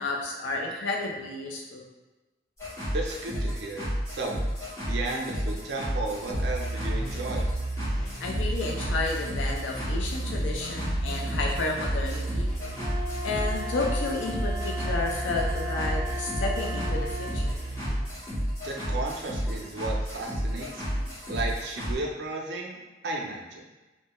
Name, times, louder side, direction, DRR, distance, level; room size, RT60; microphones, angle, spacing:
voice 1, 0.0-1.9 8.2-12.5 13.2-17.5, left 3 dB, 80° left, -1 dB, 0.4 m, -31 dB
sound 1, 2.6-21.9, equal, 15° left, 0.7 m, -31 dB
voice 2, 2.9-7.4 18.6-23.7, right 2 dB, 60° right, 0 dB, 0.4 m, -34 dB
sound 2, 6.3-17.9, right 2 dB, 35° left, 1.1 m, -35 dB
Wind instrument woodwind instrument, 12.7-17.4, left 1 dB, 55° left, 1.0 m, -38 dB
2.2 x 2.1 x 2.9 m, 1.1 s
head